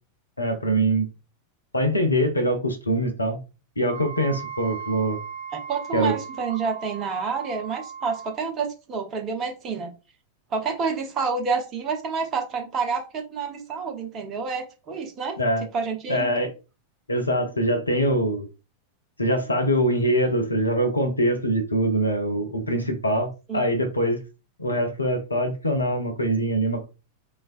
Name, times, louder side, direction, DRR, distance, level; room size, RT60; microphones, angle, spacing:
voice 1, 0.4-1.1 1.7-3.4 3.8-5.2 5.9-6.1 15.4-15.6 16.1-16.5 17.1-18.5 19.2-24.2 24.6-26.8, right 1 dB, 80° left, 6 dB, 0.5 m, -23 dB
Wind instrument woodwind instrument, 3.8-8.4, right 7 dB, 70° right, 0.9 m, -38 dB
voice 2, 5.5-9.9 10.5-15.4 15.7-16.3 23.5-23.6, right 5 dB, 30° right, 3 dB, 0.7 m, -28 dB
3.2 x 2.4 x 2.4 m, 0.30 s
figure-of-eight pair, 90°, 0 cm